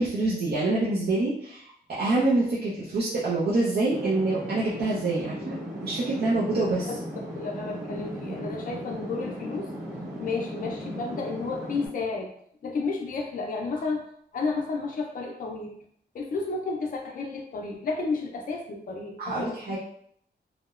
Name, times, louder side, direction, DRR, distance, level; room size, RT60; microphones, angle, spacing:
voice 1, 0.0-1.7 2.0-5.5 5.8-6.9 19.2-19.8, right 2 dB, 65° right, -7 dB, 0.5 m, -26 dB
sound 1, 3.9-11.9, equal, 15° right, 1.0 m, -37 dB
voice 2, 7.3-9.7 10.2-12.3 12.6-14.0 14.3-15.7 16.1-19.8, left 4 dB, 50° left, 1 dB, 0.4 m, -32 dB
2.8 x 2.0 x 2.3 m, 0.68 s
wide cardioid pair, 165°, 18 cm